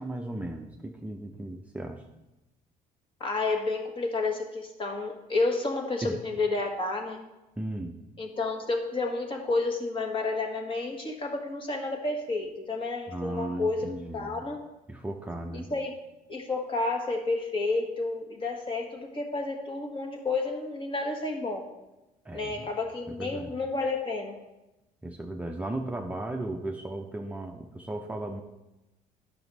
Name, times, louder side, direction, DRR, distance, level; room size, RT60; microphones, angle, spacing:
voice 1, 0.0-2.0 6.0-6.2 7.6-8.0 13.1-14.4 14.9-15.7 22.2-22.7 23.1-23.5 25.0-28.4, right 1 dB, 10° right, 1 dB, 0.6 m, -36 dB
voice 2, 3.2-7.2 8.2-14.6 15.5-15.9 16.3-21.6 22.3-24.3, left 3 dB, 35° left, 2 dB, 1.5 m, -30 dB
10.5 x 6.0 x 4.0 m, 0.99 s
cardioid pair, 115°, 16 cm